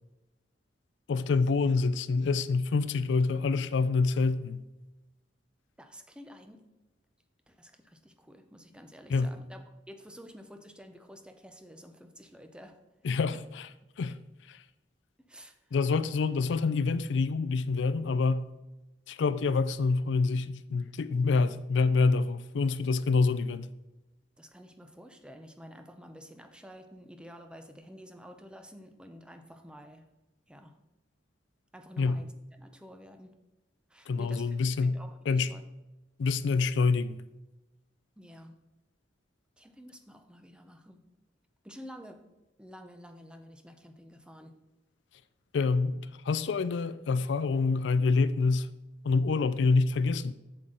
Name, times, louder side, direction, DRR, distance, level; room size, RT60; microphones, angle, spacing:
voice 1, 1.1-4.6 9.1-9.3 13.0-13.7 14.0-14.2 14.5-14.6 15.7-18.5 19.1-23.7 32.0-32.2 34.1-35.0 35.3-35.5 36.2-37.2 45.5-46.0 46.2-48.7 49.0-50.3, left 4 dB, 70° left, 0.4 m, -26 dB
voice 2, 5.8-6.7 7.5-12.8 13.1-13.4 15.2-15.7 24.4-30.1 30.5-30.8 31.7-33.4 33.9-35.6 38.2-38.6 39.6-41.0 41.6-42.3 42.6-44.5, equal, 5° right, 0.6 m, -50 dB
7.8 x 7.7 x 3.8 m
head